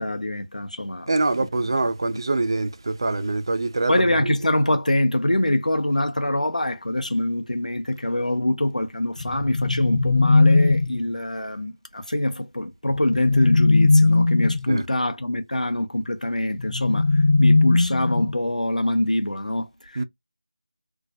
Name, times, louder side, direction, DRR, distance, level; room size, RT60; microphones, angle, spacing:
voice 1, 0.0-1.1 2.1-2.2 3.9-20.0, left 1 dB, 85° left, 0.7 m, -24 dB
voice 2, 1.1-4.3 14.7-14.8 20.0-20.1, right 2 dB, 35° right, 0.3 m, -24 dB
sound 1, 9.2-11.0 12.8-14.7 16.6-18.5, left 3 dB, 50° left, 1.1 m, -19 dB
2.2 x 2.1 x 2.7 m
figure-of-eight pair, 170°, 4 cm